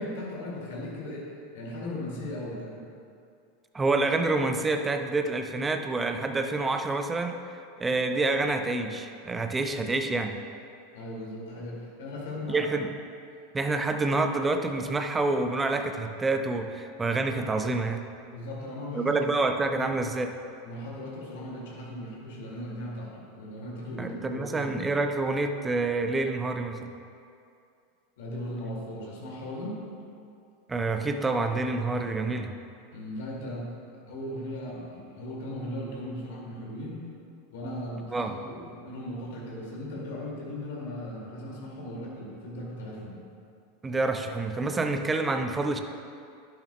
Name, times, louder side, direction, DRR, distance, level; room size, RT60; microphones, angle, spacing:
voice 1, 0.0-2.8 10.9-12.7 18.3-19.2 20.6-24.8 28.2-29.8 32.9-33.7 34.1-37.1 37.5-43.2, left 1 dB, 55° left, -4 dB, 2.2 m, -37 dB
voice 2, 3.7-7.4 7.8-10.4 12.5-12.9 13.5-18.0 18.9-20.3 24.0-26.9 30.7-32.5 38.1-38.3 43.8-45.8, right 3 dB, 15° right, 6 dB, 0.6 m, -27 dB
11.5 x 10.5 x 2.3 m, 2.4 s
figure-of-eight pair, 85°, 0 cm